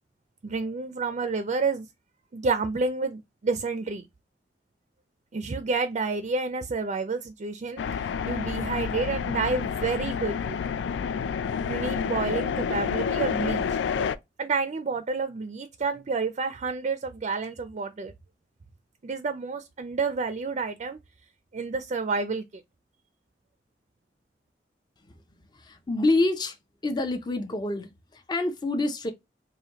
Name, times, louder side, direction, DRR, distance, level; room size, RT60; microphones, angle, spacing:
voice 1, 0.4-1.9 2.3-4.0 5.3-10.6 11.7-13.8 14.4-18.1 19.0-21.0 21.5-22.4, right 4 dB, 40° right, 0.4 m, -29 dB
sound 1, 7.8-14.1, left 6 dB, 85° left, 0.3 m, -29 dB
voice 2, 25.5-26.6 26.8-29.1, left 2 dB, 25° left, 0.5 m, -27 dB
4.9 x 2.6 x 2.8 m
head